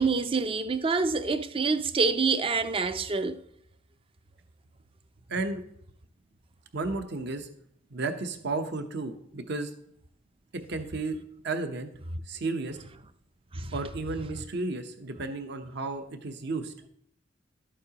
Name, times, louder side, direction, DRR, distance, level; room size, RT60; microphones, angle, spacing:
voice 1, 0.0-3.4 13.5-13.7, right 4 dB, 25° right, 0.5 m, -26 dB
voice 2, 5.3-5.7 6.7-7.5 7.9-9.7 10.5-11.2 11.4-11.9 12.3-12.8 13.7-16.7, right 3 dB, 60° right, 0.9 m, -33 dB
12.0 x 8.6 x 2.9 m
head